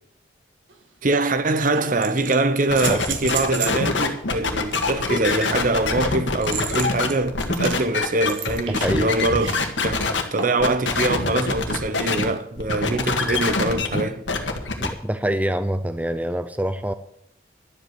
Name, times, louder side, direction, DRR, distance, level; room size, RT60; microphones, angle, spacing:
sound 1, 0.7-0.8 1.7-3.8 4.7-9.7 10.4-10.7 12.4-12.5, right 6 dB, 85° right, 2.2 m, -33 dB
voice 1, 1.0-9.5 9.8-14.2, right 2 dB, 45° right, 0.8 m, -23 dB
sound 2, 2.7-10.2 10.6-12.2 12.6-14.9, left 3 dB, 80° left, 1.9 m, -24 dB
voice 2, 14.8-16.9, right 1 dB, 10° right, 0.5 m, -25 dB
12.0 x 8.1 x 7.7 m
head